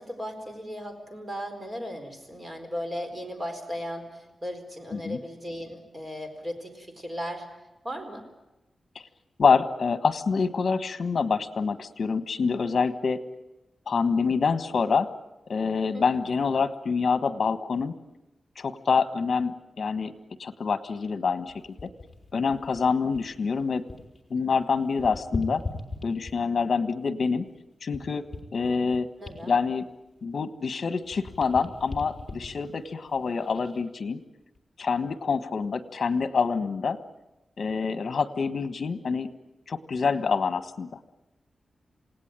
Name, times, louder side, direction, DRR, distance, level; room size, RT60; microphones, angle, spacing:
voice 1, 0.0-7.4 7.8-8.2 15.9-16.0 29.2-29.6, equal, 25° right, 5 dB, 4.5 m, -36 dB
voice 2, 9.4-13.2 13.9-15.1 15.5-17.9 18.6-20.1 20.4-21.5 22.3-23.8 24.3-25.6 26.0-27.4 27.8-28.2 28.5-29.1 29.5-29.9 30.2-34.2 34.8-37.0 37.6-39.3 39.7-40.9, left 5 dB, 60° left, 11 dB, 1.4 m, -26 dB
sound 1, 21.5-24.2 24.5-26.6 27.2-30.7 31.0-33.8 34.4-34.6, left 3 dB, 20° left, 3.7 m, -40 dB
27.5 x 18.5 x 9.0 m, 0.97 s
wide cardioid pair, 130°, 0 cm